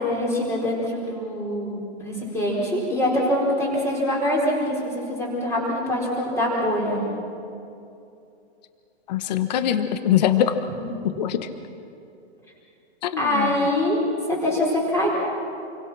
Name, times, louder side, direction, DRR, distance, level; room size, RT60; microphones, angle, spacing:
voice 1, 0.0-7.0 10.8-10.9 13.2-14.0 14.3-15.1, left 1 dB, 10° left, -3 dB, 4.5 m, -24 dB
voice 2, 9.1-10.5 11.2-11.5 13.0-13.7, left 10 dB, 40° left, 9 dB, 1.2 m, -23 dB
29.0 x 23.5 x 6.1 m, 2.6 s
hypercardioid pair, 170°, 34 cm